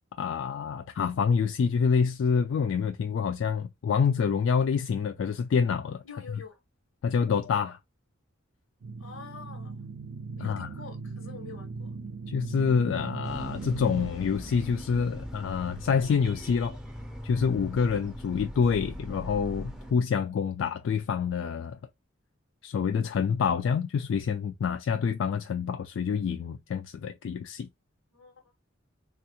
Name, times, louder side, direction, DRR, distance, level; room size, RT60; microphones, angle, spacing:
voice 1, 0.2-6.0 7.0-7.8 10.4-10.7 12.3-16.8 17.2-21.8 22.6-27.7, left 6 dB, 65° left, 0.3 m, -27 dB
voice 2, 6.0-6.6 9.0-9.8 10.4-11.9 28.1-28.4, left 5 dB, 85° left, 1.1 m, -46 dB
sound 1, 8.8-14.1, right 4 dB, 90° right, 0.5 m, -38 dB
sound 2, 13.2-19.9, equal, 5° right, 0.4 m, -40 dB
3.4 x 2.4 x 2.8 m
head